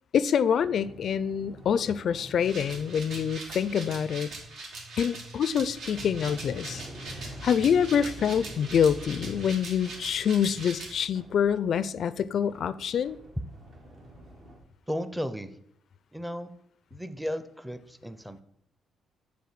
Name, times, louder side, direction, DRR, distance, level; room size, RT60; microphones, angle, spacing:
voice 1, 0.1-4.3 5.0-6.8 7.4-13.2, left 8 dB, 60° left, 0.4 m, -26 dB
Sliding door, 0.6-4.4 5.0-14.6, right 1 dB, 60° right, 1.8 m, -47 dB
sound 1, 2.4-10.9, right 3 dB, 75° right, 2.1 m, -41 dB
voice 2, 14.9-15.5 16.1-16.5 16.9-18.4, equal, 5° right, 0.6 m, -34 dB
6.9 x 4.1 x 6.5 m
cardioid pair, 90°, 0 cm